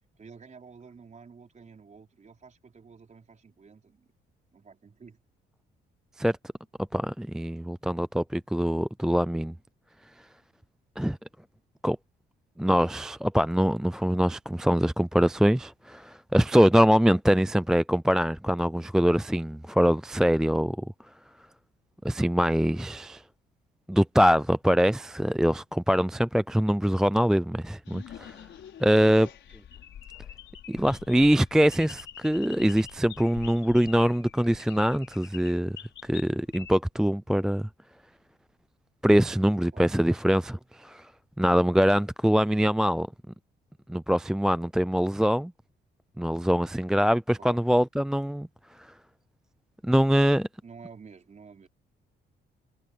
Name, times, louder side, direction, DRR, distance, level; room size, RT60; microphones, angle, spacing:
voice 1, 0.2-4.1 4.5-5.2 29.0-29.3 39.7-40.2 47.4-47.6 50.6-51.7, right 5 dB, 35° right, 4.5 m, -50 dB
voice 2, 6.9-9.5 11.0-11.2 11.8-12.0 12.6-20.8 22.0-23.2 23.9-28.3 28.8-29.3 30.7-35.8 36.0-37.7 39.0-41.0 41.4-43.1 43.9-45.5 46.2-48.5 49.8-50.5, equal, 5° right, 0.4 m, -23 dB
sound 1, 27.8-36.7, left 10 dB, 70° left, 6.2 m, -46 dB
cardioid pair, 90°, 20 cm